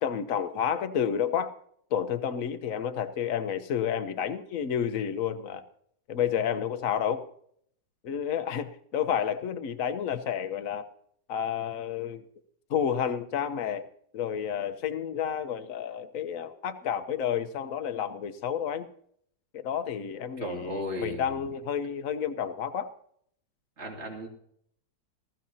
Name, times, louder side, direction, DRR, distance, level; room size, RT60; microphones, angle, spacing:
voice 1, 0.0-1.5 1.9-5.6 6.1-7.3 8.0-10.8 11.3-12.2 12.7-13.9 14.1-18.9 19.5-22.9, left 8 dB, 50° left, 10 dB, 1.2 m, -30 dB
voice 2, 20.4-21.4 23.8-24.3, equal, 35° right, -1 dB, 3.2 m, -35 dB
20.0 x 15.0 x 2.8 m, 0.66 s
omnidirectional pair, 2.0 m